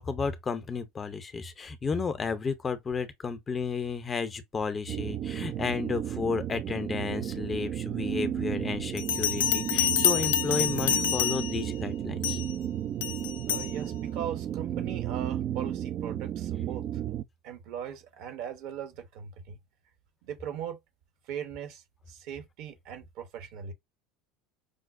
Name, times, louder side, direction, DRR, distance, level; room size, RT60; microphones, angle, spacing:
voice 1, 0.0-12.4, left 5 dB, 30° left, 0.6 m, -32 dB
sound 1, 4.9-17.2, right 10 dB, 45° right, 0.3 m, -33 dB
Bell, 9.0-11.7 12.2-12.5 13.0-13.7, left 10 dB, 75° left, 0.4 m, -27 dB
voice 2, 13.4-16.9 17.4-19.6 20.2-20.8 21.3-23.7, right 9 dB, 65° right, 0.8 m, -39 dB
5.1 x 2.0 x 2.5 m
hypercardioid pair, 80°, 0 cm